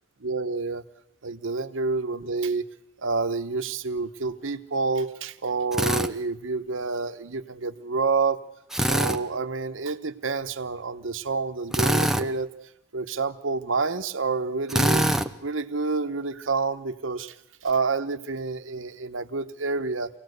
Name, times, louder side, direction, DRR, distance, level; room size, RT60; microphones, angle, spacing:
voice 1, 0.2-0.8 1.2-2.6 3.0-8.4 8.9-12.5 12.9-15.1 15.4-17.3 17.6-20.1, right 4 dB, 90° right, 9 dB, 1.1 m, -28 dB
Drill, 5.7-6.1 8.7-9.2 11.7-12.3 14.7-15.3, right 1 dB, 5° right, 0.8 m, -23 dB
25.0 x 17.5 x 8.1 m, 0.83 s
head